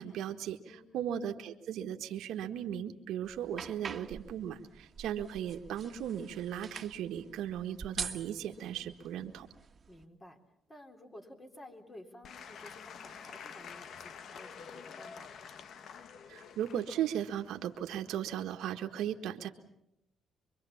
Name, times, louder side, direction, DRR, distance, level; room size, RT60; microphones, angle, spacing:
voice 1, 0.0-0.6 0.9-9.5 16.3-19.5, right 10 dB, 85° right, 4 dB, 1.5 m, -37 dB
sound 1, 3.2-10.0, right 5 dB, 40° right, 1.6 m, -46 dB
voice 2, 9.9-10.4 10.7-15.5, left 1 dB, 25° left, 4 dB, 4.0 m, -53 dB
Applause / Crowd, 12.2-18.5, left 7 dB, 65° left, 1.1 m, -49 dB
25.5 x 23.5 x 7.2 m, 0.81 s
cardioid pair, 90°, 0 cm